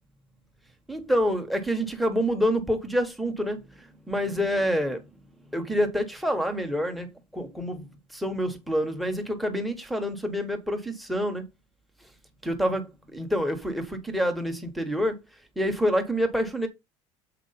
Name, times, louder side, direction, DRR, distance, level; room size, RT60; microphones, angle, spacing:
voice 1, 0.9-5.1 5.5-7.1 7.3-11.4 12.4-15.2 15.6-16.7, equal, ahead, 1.1 m, -27 dB
7.6 x 4.7 x 4.1 m
cardioid pair, 170°, 11 cm